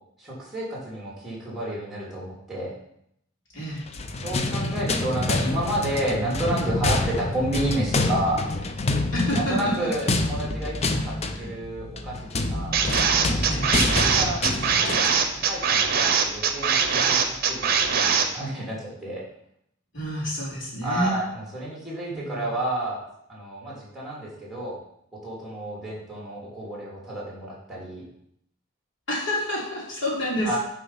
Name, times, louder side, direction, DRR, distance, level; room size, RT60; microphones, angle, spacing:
voice 1, 0.2-2.8 4.2-8.4 9.3-12.2 12.5-12.7 13.2-13.4 13.8-19.2 20.8-23.0 23.3-24.8 25.2-28.0 30.4-30.6, right 1 dB, ahead, -6 dB, 3.2 m, -30 dB
voice 2, 3.5-3.8 9.1-9.9 10.9-11.0 11.4-11.5 13.4-13.8 19.9-21.2 22.1-22.6 29.1-30.6, equal, 70° left, -6 dB, 3.5 m, -29 dB
sound 1, 3.8-15.2, left 2 dB, 35° left, 0.5 m, -27 dB
sound 2, 12.7-18.3, right 6 dB, 50° right, 0.8 m, -22 dB
6.8 x 4.9 x 5.7 m, 0.74 s
head